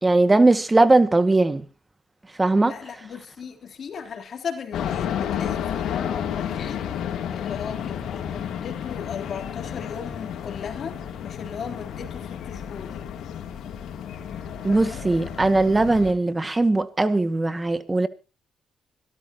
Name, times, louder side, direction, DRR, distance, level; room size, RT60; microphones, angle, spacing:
voice 1, 0.0-1.6 2.4-2.8 14.6-18.1, right 2 dB, 20° right, 1.9 m, -19 dB
voice 2, 2.6-6.9 7.3-12.9 14.6-15.0, left 6 dB, 60° left, 3.4 m, -37 dB
sound 1, 4.7-16.1, left 9 dB, 75° left, 2.9 m, -31 dB
25.0 x 13.5 x 2.9 m
supercardioid pair, 60°, 0 cm